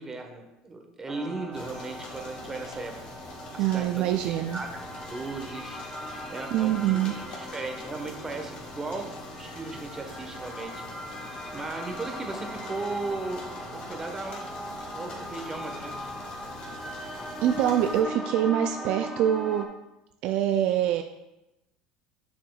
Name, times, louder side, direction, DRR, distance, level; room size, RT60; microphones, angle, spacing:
voice 1, 0.0-2.9 3.5-5.8 6.3-10.8 11.5-13.4 13.7-16.1, right 3 dB, 20° right, 4 dB, 1.2 m, -37 dB
sound 1, 1.1-19.7, equal, 5° left, 1.1 m, -40 dB
sound 2, 1.5-18.0, left 2 dB, 55° left, 1.9 m, -44 dB
voice 2, 3.6-4.6 6.5-7.2 17.4-19.7 20.2-21.0, right 11 dB, 60° right, 7 dB, 0.3 m, -25 dB
7.7 x 6.6 x 2.3 m, 0.94 s
hypercardioid pair, 80°, 2 cm